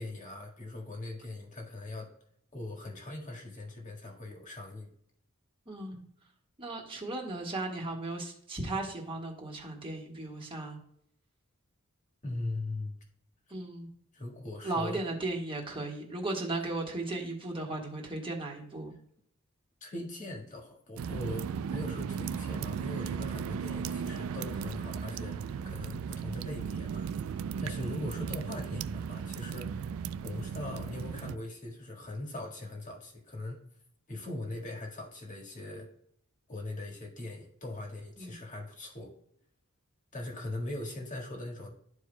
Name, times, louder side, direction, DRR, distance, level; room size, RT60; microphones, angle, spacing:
voice 1, 0.0-2.1 2.5-4.9 12.2-13.0 14.1-15.0 19.8-29.8 30.2-33.6 34.1-35.9 36.5-39.1 40.1-41.7, left 2 dB, 35° left, 0 dB, 1.7 m, -40 dB
voice 2, 5.7-6.0 6.6-10.8 13.5-13.9 14.6-18.9 23.5-23.6 38.2-38.3, right 2 dB, 25° right, -1 dB, 1.5 m, -36 dB
sound 1, 21.0-31.4, right 7 dB, 70° right, 0.3 m, -36 dB
12.5 x 4.6 x 2.2 m, 0.70 s
head